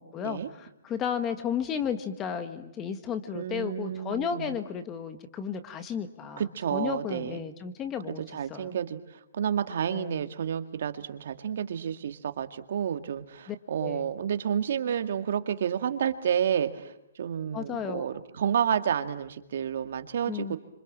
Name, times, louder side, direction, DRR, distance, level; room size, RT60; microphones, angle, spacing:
voice 1, 0.0-6.4 6.7-8.2 8.5-8.7 9.9-10.2 13.5-14.1 17.5-18.0 20.3-20.6, left 8 dB, 15° left, 10 dB, 1.5 m, -33 dB
voice 2, 3.3-4.6 6.4-7.4 8.3-9.0 9.3-16.9 17.2-20.6, right 8 dB, 60° right, 8 dB, 2.0 m, -30 dB
28.0 x 26.5 x 7.5 m, 0.82 s
hypercardioid pair, 165°, 0 cm